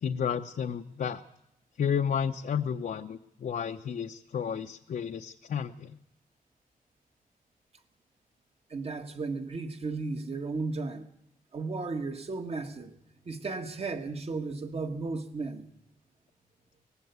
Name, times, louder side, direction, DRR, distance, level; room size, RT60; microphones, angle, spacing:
voice 1, 0.0-1.2 1.8-5.9, left 7 dB, 65° left, 0.8 m, -32 dB
voice 2, 8.7-11.1 11.5-12.9 13.2-15.7, right 3 dB, 40° right, 1.7 m, -34 dB
19.0 x 15.0 x 9.4 m
wide cardioid pair, 130°, 15 cm